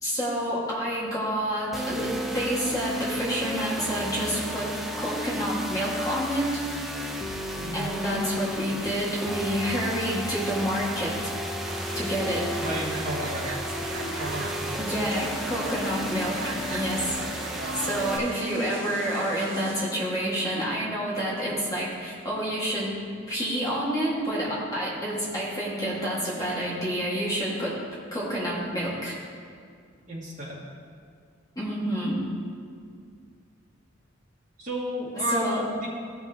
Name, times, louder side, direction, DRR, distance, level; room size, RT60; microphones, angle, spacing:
voice 1, 0.0-4.7 4.9-6.6 7.7-11.3 11.9-12.5 14.8-17.2 17.8-22.9 23.3-27.8 28.1-29.2 31.6-32.2 35.3-35.7, equal, 20° left, -7 dB, 1.8 m, -28 dB
sound 1, 1.7-18.2, equal, ahead, 0.6 m, -33 dB
voice 2, 7.6-7.9 12.6-13.4 14.2-14.8 30.1-30.7 34.6-35.9, right 1 dB, 40° right, -7 dB, 2.3 m, -32 dB
sound 2, 11.6-19.8, right 3 dB, 75° right, 0.9 m, -38 dB
15.0 x 5.9 x 2.9 m, 2.2 s
head